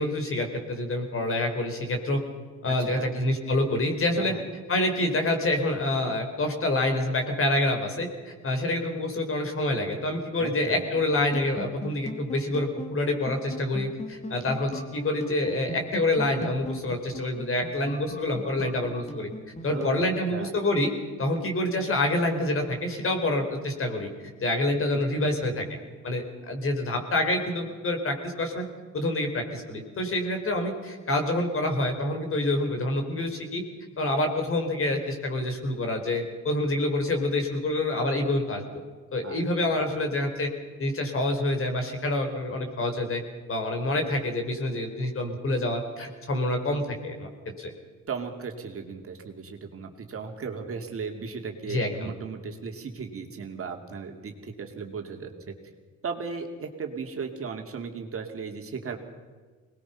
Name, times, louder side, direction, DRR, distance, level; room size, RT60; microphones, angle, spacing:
voice 1, 0.0-2.2 2.6-4.3 4.7-19.3 19.6-20.9 21.2-24.1 24.4-25.6 26.0-28.7 28.9-33.6 34.0-38.6 39.1-40.5 40.8-43.2 43.5-47.3 47.6-47.7 51.7-52.1, left 1 dB, 45° left, 4 dB, 4.4 m, -27 dB
voice 2, 2.7-3.1 4.2-4.4 10.4-10.9 19.7-20.5 24.9-25.6 39.2-40.0 48.1-55.5 56.0-59.0, right 5 dB, 50° right, 3 dB, 2.6 m, -36 dB
sound 1, 10.9-19.9, left 1 dB, 20° left, 2.6 m, -39 dB
22.5 x 20.0 x 5.8 m, 1.4 s
cardioid pair, 90°, 30 cm